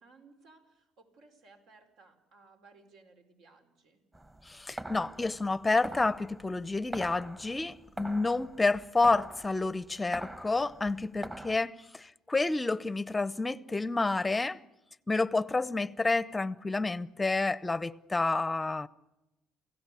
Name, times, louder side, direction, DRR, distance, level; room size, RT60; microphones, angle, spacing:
voice 1, 0.0-4.0, right 3 dB, 75° right, 4.7 m, -59 dB
sound 1, 4.1-11.6, right 1 dB, 15° right, 1.5 m, -44 dB
voice 2, 4.5-14.6 15.1-18.9, left 3 dB, 15° left, 0.7 m, -29 dB
28.0 x 17.0 x 8.4 m
cardioid pair, 120°, 0 cm